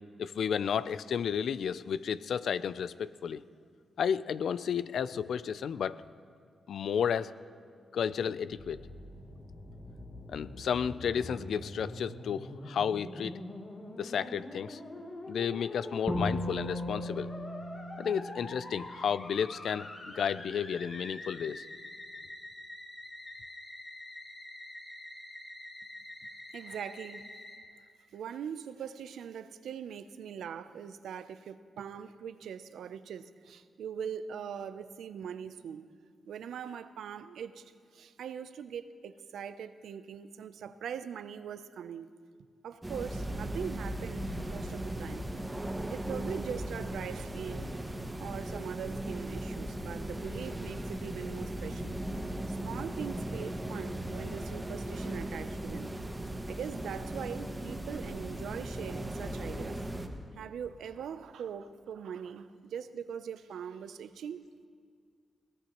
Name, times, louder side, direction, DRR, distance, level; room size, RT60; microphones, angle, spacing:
voice 1, 0.2-3.4 4.0-6.0 6.7-7.3 7.9-8.8 10.3-13.4 14.0-14.8 15.3-17.3 18.0-19.9 20.1-21.6, left 7 dB, 75° left, 16 dB, 0.4 m, -32 dB
Musical instrument, 8.5-27.6, left 1 dB, 45° left, 3.2 m, -45 dB
Bowed string instrument, 16.1-19.2, left 1 dB, ahead, 2.3 m, -36 dB
voice 2, 26.5-27.2 28.1-35.9 36.3-42.1 42.6-45.3 45.9-47.7 48.2-52.0 52.5-56.0 56.5-59.8 60.3-64.4, right 8 dB, 85° right, 13 dB, 0.6 m, -41 dB
sound 1, 42.8-60.1, right 1 dB, 15° right, 1.7 m, -37 dB
21.5 x 17.5 x 3.0 m, 2.1 s
cardioid pair, 60°, 0 cm